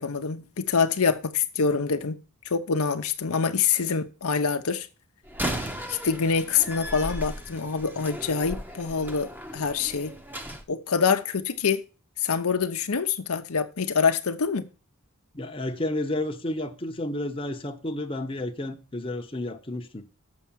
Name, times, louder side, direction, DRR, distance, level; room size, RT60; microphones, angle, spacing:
voice 1, 0.0-4.9 5.9-10.1 10.7-11.8 12.2-14.7, left 5 dB, 75° left, 0.8 m, -25 dB
Slam, 5.2-10.6, equal, 10° right, 0.9 m, -36 dB
voice 2, 15.3-20.0, left 1 dB, 25° left, 0.9 m, -31 dB
7.2 x 5.8 x 7.3 m
head